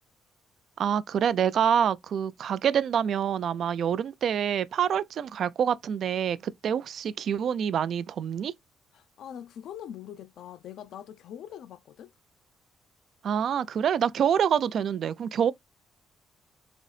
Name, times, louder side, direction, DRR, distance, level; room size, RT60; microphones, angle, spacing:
voice 1, 0.8-8.5 13.2-15.5, right 8 dB, 65° right, 0.3 m, -26 dB
voice 2, 8.9-12.1, left 10 dB, 75° left, 0.4 m, -43 dB
3.9 x 2.7 x 3.2 m
cardioid pair, 90°, 0 cm